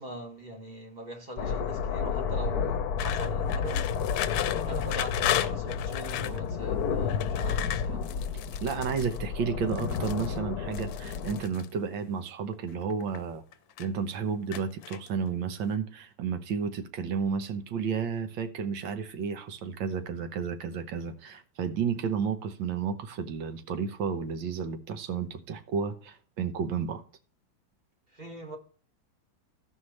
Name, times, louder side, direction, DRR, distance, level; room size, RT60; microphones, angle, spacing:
voice 1, 0.0-3.9 4.6-8.1 28.1-28.6, equal, 25° right, 1.5 m, -42 dB
sound 1, 1.4-11.4, left 6 dB, 60° left, 1.2 m, -31 dB
sound 2, 3.0-6.4 7.1-9.2 9.7-10.3 10.7-11.7 12.5-13.2 13.5-14.1 14.5-15.3, left 13 dB, 85° left, 1.3 m, -35 dB
voice 2, 8.6-13.4 13.8-27.0, right 6 dB, 80° right, 1.7 m, -32 dB
15.5 x 5.6 x 3.2 m
omnidirectional pair, 2.0 m